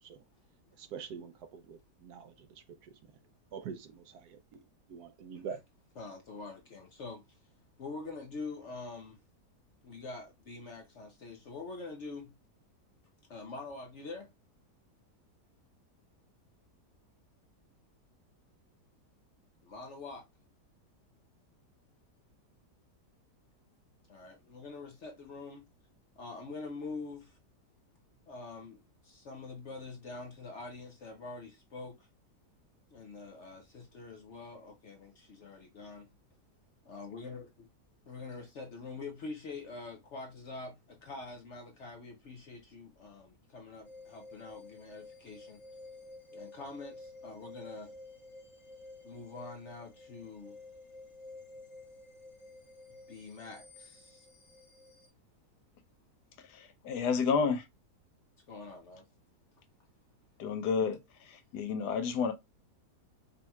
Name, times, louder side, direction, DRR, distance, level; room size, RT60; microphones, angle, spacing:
voice 1, 0.8-3.0 3.5-5.6, right 6 dB, 70° right, 1.1 m, -45 dB
voice 2, 6.0-7.4 7.8-9.2 9.8-12.3 13.3-14.3 19.6-20.3 24.1-25.6 26.2-27.4 28.3-32.1 32.9-36.1 36.9-37.5 38.1-45.6 46.3-47.9 49.0-50.6 53.1-54.3 58.5-59.0 60.8-61.0, left 3 dB, 60° left, 0.7 m, -45 dB
sound 1, 43.8-55.1, left 2 dB, 25° left, 1.0 m, -52 dB
voice 3, 56.5-57.7 60.4-61.0 61.5-62.3, left 5 dB, 75° left, 1.2 m, -30 dB
5.2 x 2.8 x 2.3 m
omnidirectional pair, 1.8 m